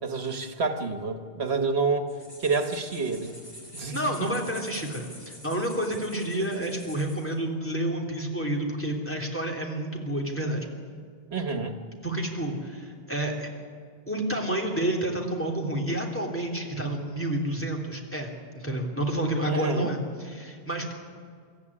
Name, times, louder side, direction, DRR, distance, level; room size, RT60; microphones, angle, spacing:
voice 1, 0.0-2.1 2.4-3.4 3.7-4.0 11.3-11.8 19.5-19.9, right 4 dB, 80° right, 6 dB, 1.7 m, -28 dB
sound 1, 2.1-7.3, left 1 dB, 65° left, 5.8 m, -47 dB
voice 2, 3.9-10.7 12.0-13.5 14.1-20.9, right 1 dB, 10° left, 0 dB, 3.2 m, -29 dB
24.5 x 14.0 x 9.8 m, 2.1 s
omnidirectional pair, 1.1 m